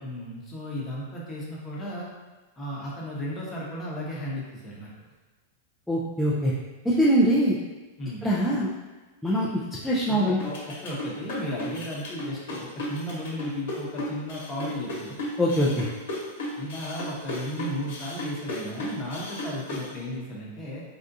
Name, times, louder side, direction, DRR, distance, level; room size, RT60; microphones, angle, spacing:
voice 1, 0.0-2.1 2.6-4.9 8.0-8.3 10.1-15.2 16.6-20.8, equal, 15° left, -5 dB, 0.9 m, -35 dB
voice 2, 5.9-6.5 6.8-7.5 8.2-8.7 9.2-9.5 9.8-10.4 15.4-15.9, equal, ahead, -7 dB, 0.4 m, -22 dB
sound 1, 10.4-19.9, left 1 dB, 70° left, 1.0 m, -34 dB
3.5 x 2.4 x 2.6 m, 1.2 s
supercardioid pair, 140°, 0 cm